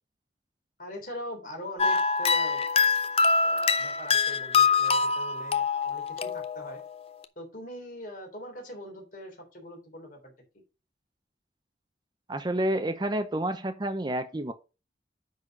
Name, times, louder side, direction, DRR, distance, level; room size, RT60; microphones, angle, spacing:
voice 1, 0.8-2.6 3.4-6.8 7.3-10.3, equal, 50° left, 3.3 m, -42 dB
sound 1, 1.8-6.9, left 4 dB, 35° left, 0.5 m, -25 dB
voice 2, 12.3-14.5, right 1 dB, 25° right, 0.6 m, -29 dB
9.8 x 4.2 x 4.9 m
head